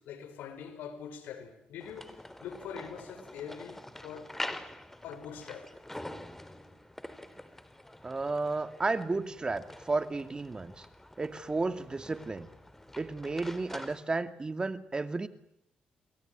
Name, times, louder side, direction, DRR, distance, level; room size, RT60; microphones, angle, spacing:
voice 1, 0.0-4.3 5.0-5.7, left 7 dB, 85° left, 5.1 m, -44 dB
sound 1, 1.8-14.0, left 1 dB, 10° left, 3.7 m, -45 dB
voice 2, 8.0-10.8 11.2-12.5 13.0-15.3, right 3 dB, 30° right, 2.4 m, -33 dB
29.5 x 21.5 x 9.3 m
supercardioid pair, 65°, 3 cm